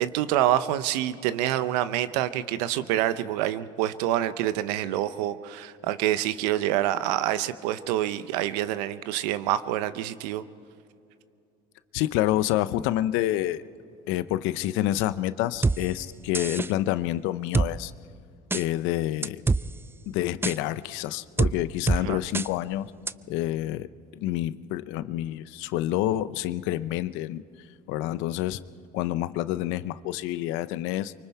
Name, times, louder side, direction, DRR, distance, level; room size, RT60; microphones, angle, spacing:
voice 1, 0.0-10.4 22.0-22.2, right 13 dB, 90° right, 14 dB, 0.8 m, -27 dB
voice 2, 11.9-13.6 14.1-17.9 18.5-19.4 20.1-22.9 23.3-23.9 24.1-27.4 27.9-28.6 28.9-31.1, left 14 dB, 75° left, 14 dB, 0.7 m, -28 dB
sound 1, 15.6-15.8 16.3-16.7 17.5-17.7 18.5-18.6 19.2-19.6 20.4-20.6 21.4-21.5 21.9-22.0 22.3-22.5 23.1-23.2, right 3 dB, 10° right, 0.4 m, -23 dB
24.5 x 24.0 x 4.7 m, 2.6 s
supercardioid pair, 85°, 20 cm